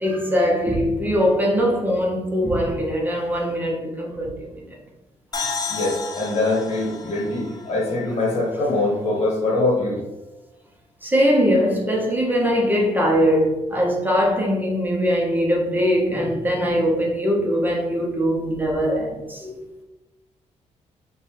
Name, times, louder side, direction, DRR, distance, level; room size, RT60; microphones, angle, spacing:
voice 1, 0.0-4.8 5.4-5.5 11.0-19.6, equal, 15° right, 0.7 m, -21 dB
sound 1, 5.3-8.9, left 4 dB, 30° left, 0.5 m, -32 dB
voice 2, 5.7-10.0, left 2 dB, 60° left, 1.3 m, -23 dB
5.2 x 2.2 x 3.2 m
cardioid pair, 130°, 12 cm